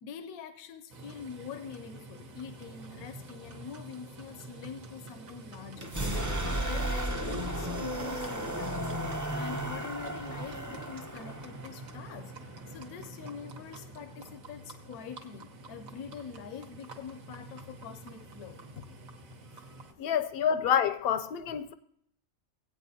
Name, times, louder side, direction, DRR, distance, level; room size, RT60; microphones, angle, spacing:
voice 1, 0.0-5.9 6.4-12.4 12.7-18.6 19.5-19.6 20.6-20.7, left 7 dB, 90° left, 1.1 m, -45 dB
Livestock farm animals working animals, 0.9-19.9, right 2 dB, 70° right, 1.5 m, -48 dB
sound 1, 5.8-13.5, right 1 dB, 20° right, 0.5 m, -35 dB
voice 2, 20.0-21.7, left 8 dB, 60° left, 0.6 m, -28 dB
17.5 x 8.9 x 2.7 m
omnidirectional pair, 1.5 m